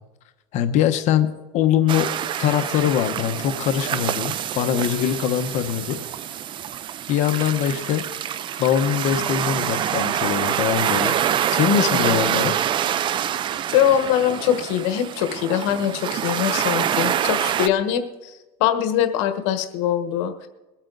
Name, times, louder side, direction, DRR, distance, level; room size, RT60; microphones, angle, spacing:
voice 1, 0.5-1.3 1.5-2.1 2.4-6.0 7.1-8.0 8.6-12.5, left 10 dB, 50° left, 8 dB, 1.0 m, -22 dB
sound 1, 1.9-17.7, right 10 dB, 35° right, 0.5 m, -26 dB
voice 2, 11.9-12.3 13.7-20.5, left 10 dB, 75° left, 7 dB, 1.3 m, -23 dB
22.0 x 8.8 x 3.9 m, 1.1 s
cardioid pair, 135°, 15 cm